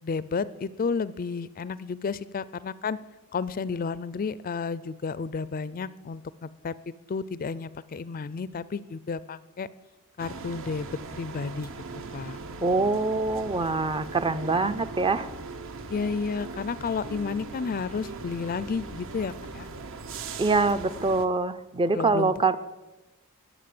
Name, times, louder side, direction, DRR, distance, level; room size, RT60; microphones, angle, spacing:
voice 1, 0.0-3.0 3.3-9.7 10.2-11.7 12.1-12.4 15.9-19.7 21.9-22.6, left 5 dB, 40° left, 18 dB, 0.4 m, -32 dB
sound 1, 10.2-21.3, right 3 dB, 65° right, 0.9 m, -39 dB
voice 2, 12.6-15.3 20.4-22.6, right 3 dB, 20° right, 12 dB, 0.5 m, -24 dB
21.0 x 7.2 x 7.7 m, 1.1 s
head